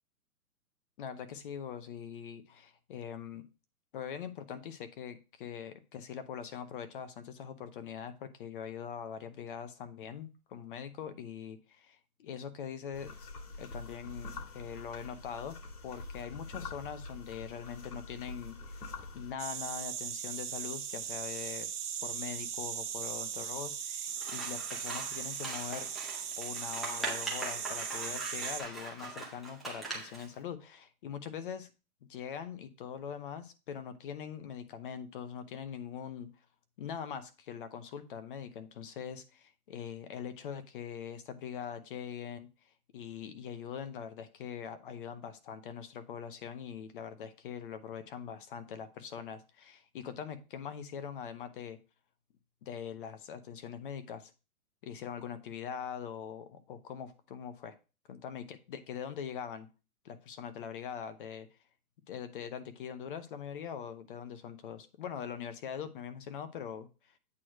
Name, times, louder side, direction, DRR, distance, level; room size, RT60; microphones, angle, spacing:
voice 1, 1.0-3.4 3.9-13.3 13.6-15.6 15.8-18.8 19.1-21.7 22.0-25.9 26.4-31.7 32.1-36.3 36.8-42.5 42.9-51.8 52.6-54.3 54.8-57.7 58.1-59.7 60.0-61.5 62.1-66.9, left 8 dB, 35° left, 10 dB, 0.8 m, -42 dB
sound 1, 12.9-19.3, left 3 dB, 90° left, 1.9 m, -45 dB
sound 2, 19.4-28.6, right 8 dB, 75° right, 1.4 m, -38 dB
Scissors, 24.2-30.3, right 3 dB, ahead, 0.6 m, -41 dB
8.5 x 3.1 x 6.2 m, 0.32 s
hypercardioid pair, 145°, 46 cm